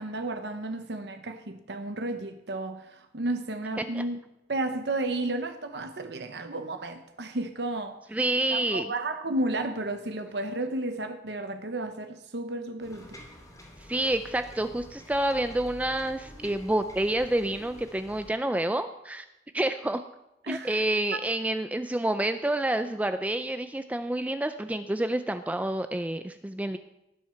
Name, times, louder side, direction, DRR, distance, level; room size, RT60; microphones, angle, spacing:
voice 1, 0.0-4.2 4.5-8.2 8.5-13.2 20.4-20.8 21.1-21.2, right 2 dB, 65° right, 0.9 m, -32 dB
voice 2, 8.1-8.9 13.8-19.3 19.5-20.0 20.5-26.8, right 1 dB, 10° right, 0.3 m, -28 dB
sound 1, 12.8-18.3, equal, 20° left, 2.8 m, -48 dB
18.5 x 7.5 x 5.8 m
head